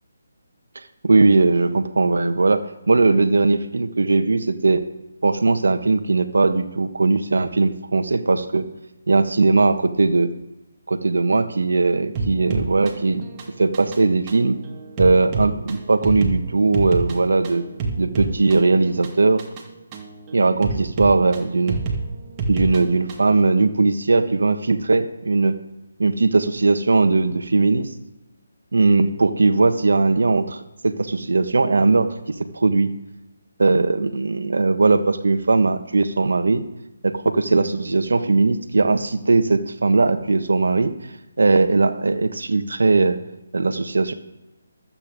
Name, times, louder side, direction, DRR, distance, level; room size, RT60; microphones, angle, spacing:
voice 1, 1.0-2.6 2.9-4.8 5.2-8.7 9.1-10.3 10.9-13.3 13.6-14.6 15.0-17.6 18.0-19.4 20.3-21.8 22.5-25.6 26.0-27.9 28.7-30.6 30.8-32.1 32.5-32.9 33.6-36.6 37.0-40.9 41.4-43.2 43.5-44.1, right 3 dB, 70° right, 9 dB, 1.4 m, -19 dB
sound 1, 12.2-23.4, right 3 dB, 25° right, 2.2 m, -29 dB
25.0 x 9.0 x 3.7 m, 1.0 s
figure-of-eight pair, 150°, 0 cm